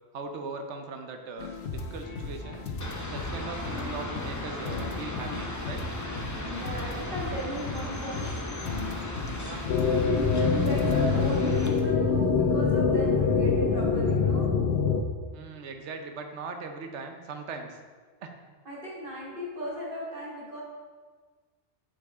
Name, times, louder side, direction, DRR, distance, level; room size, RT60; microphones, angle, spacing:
voice 1, 0.1-2.7 3.1-5.8 9.3-9.6 15.3-17.8 18.2-18.4, right 4 dB, 85° right, 5 dB, 1.0 m, -40 dB
sound 1, 1.4-11.8, left 3 dB, 90° left, 1.1 m, -37 dB
sound 2, 2.8-11.7, left 1 dB, 20° left, 0.6 m, -37 dB
voice 2, 6.4-8.3 10.6-14.5 18.7-20.6, equal, 50° right, -6 dB, 1.8 m, -36 dB
sound 3, 9.7-15.0, left 5 dB, 70° left, 0.8 m, -24 dB
8.2 x 5.4 x 3.5 m, 1.5 s
omnidirectional pair, 1.1 m